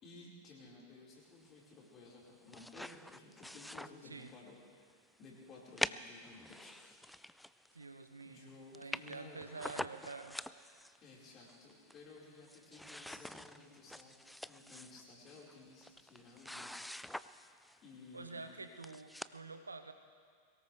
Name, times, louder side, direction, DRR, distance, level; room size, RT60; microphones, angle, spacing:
voice 1, 0.0-4.9 5.2-7.0 8.2-9.9 11.0-14.1 14.4-16.7 17.8-18.5, left 3 dB, 30° left, -4 dB, 4.7 m, -56 dB
sound 1, 2.2-4.5 4.9-5.0 5.8-7.8 8.2-8.3 8.5-8.6 8.7-11.0 11.5-12.2 12.4-17.8 18.5-18.6 18.8-19.4, left 1 dB, ahead, 0.3 m, -45 dB
voice 2, 7.7-10.4 18.1-19.9, right 3 dB, 80° right, 8 dB, 0.9 m, -48 dB
23.0 x 18.0 x 3.4 m, 2.2 s
figure-of-eight pair, 90°, 0 cm